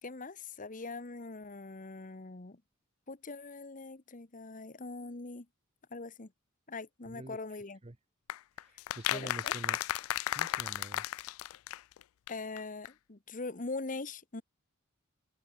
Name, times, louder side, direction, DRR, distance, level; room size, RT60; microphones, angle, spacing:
voice 1, 0.0-2.6 3.1-5.5 5.9-6.3 6.7-7.8 9.1-9.5 12.3-14.4, left 3 dB, 40° left, 1.2 m, -42 dB
voice 2, 7.1-8.0 8.5-9.8 10.3-11.0, right 2 dB, 30° right, 0.9 m, -46 dB
sound 1, 8.3-12.0 12.3-12.4 12.6-12.7 12.8-12.9, left 13 dB, 85° left, 0.3 m, -34 dB
head